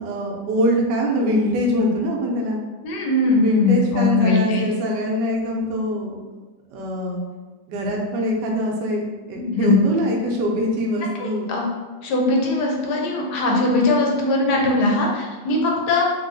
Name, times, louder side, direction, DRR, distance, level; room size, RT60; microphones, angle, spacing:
voice 1, 0.0-2.6 3.3-6.2 6.7-7.2 7.7-11.5, equal, 80° right, 0 dB, 1.2 m, -23 dB
voice 2, 2.8-4.6 9.4-9.8 11.2-11.7 12.0-16.0, left 3 dB, 80° left, -1 dB, 1.2 m, -20 dB
3.0 x 2.8 x 2.6 m, 1.3 s
omnidirectional pair, 1.9 m